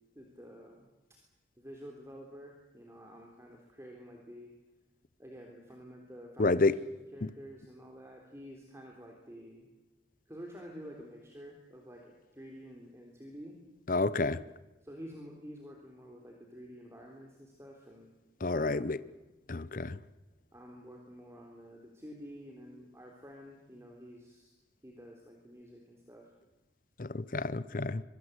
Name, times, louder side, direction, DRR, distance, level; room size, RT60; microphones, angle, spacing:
voice 1, 0.2-0.9 1.6-4.5 5.2-9.7 10.3-13.6 14.8-18.1 18.5-18.9 20.5-24.5 24.8-26.3, equal, 15° right, 3.5 m, -49 dB
voice 2, 6.4-6.8 13.9-14.4 18.4-19.0 19.5-20.0 27.0-28.0, left 3 dB, 50° left, 0.8 m, -29 dB
24.5 x 23.5 x 8.2 m
head